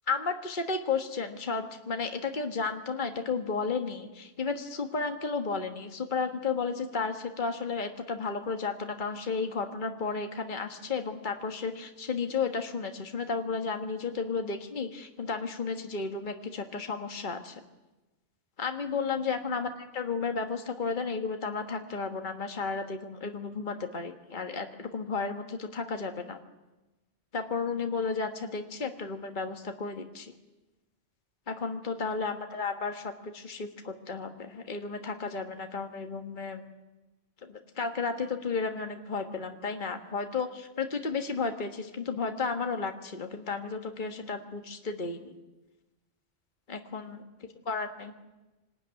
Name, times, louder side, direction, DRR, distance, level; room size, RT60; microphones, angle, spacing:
voice 1, 0.1-17.6 18.6-26.4 27.3-30.3 31.5-36.6 37.4-45.3 46.7-47.2 47.6-48.1, left 4 dB, 40° left, 5 dB, 1.7 m, -33 dB
26.5 x 19.5 x 9.7 m, 1.1 s
omnidirectional pair, 1.2 m